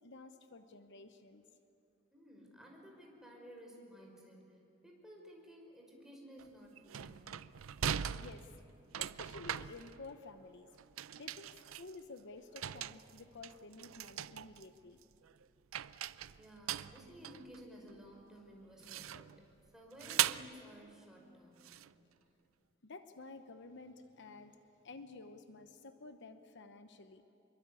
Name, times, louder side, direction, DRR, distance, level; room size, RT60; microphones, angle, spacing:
voice 1, 0.0-1.5 8.2-8.5 9.0-10.7 11.1-15.0 22.8-24.6 24.8-27.2, left 3 dB, 60° left, 8 dB, 1.0 m, -52 dB
voice 2, 2.1-4.6 4.8-7.3 16.4-19.3 19.7-21.7, equal, 5° right, -1 dB, 5.5 m, -55 dB
sound 1, 6.4-6.5 6.8-10.4 10.7-12.2 12.6-14.7 15.0-15.4 15.7-18.1 18.8-19.4 20.0-20.6 21.6-21.9, right 10 dB, 80° right, 0.5 m, -40 dB
26.5 x 23.0 x 8.4 m, 2.7 s
head